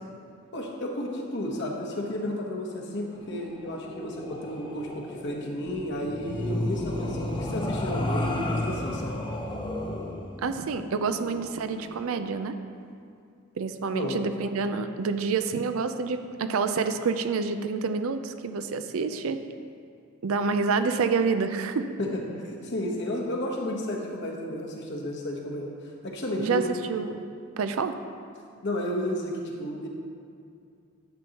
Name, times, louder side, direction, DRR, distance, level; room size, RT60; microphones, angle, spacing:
voice 1, 0.5-9.2 13.9-14.2 22.0-22.1 22.4-26.7 28.6-29.9, left 1 dB, 55° left, -1 dB, 1.1 m, -32 dB
sound 1, 3.1-12.1, left 1 dB, 20° left, 0.6 m, -33 dB
voice 2, 10.4-12.6 13.6-19.4 20.2-21.9 26.4-27.2 27.6-28.0, right 5 dB, 70° right, 9 dB, 0.4 m, -28 dB
10.5 x 7.0 x 2.9 m, 2.4 s
head